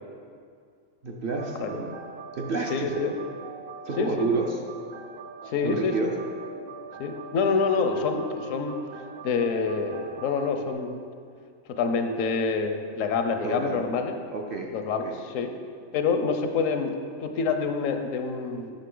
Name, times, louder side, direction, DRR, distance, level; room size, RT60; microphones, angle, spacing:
voice 1, 1.0-1.9 2.4-3.1 3.9-4.5 5.6-6.1 13.4-13.8 14.3-14.7 15.0-15.1, right 3 dB, 55° right, 0 dB, 0.7 m, -29 dB
sound 1, 1.4-10.7, right 4 dB, 80° right, 1.0 m, -42 dB
voice 2, 2.7-3.1 4.0-4.3 5.5-6.1 7.0-8.8 9.2-11.0 11.7-14.2 14.7-15.5 15.9-18.7, left 5 dB, 75° left, 6 dB, 1.0 m, -27 dB
9.2 x 6.2 x 3.8 m, 2.2 s
omnidirectional pair, 1.4 m